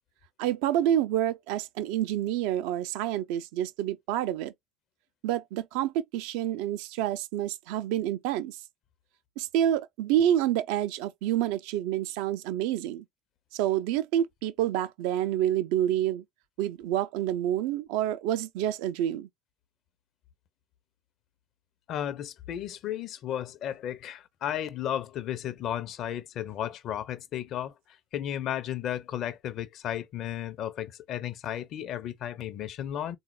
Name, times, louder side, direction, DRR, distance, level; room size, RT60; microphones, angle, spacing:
voice 1, 0.4-4.5 5.2-8.6 9.4-13.0 13.5-16.2 16.6-19.3, right 11 dB, 65° right, 0.4 m, -28 dB
voice 2, 21.9-27.7 28.1-33.2, left 11 dB, 50° left, 0.6 m, -34 dB
3.6 x 2.3 x 3.1 m
figure-of-eight pair, 70°, 0 cm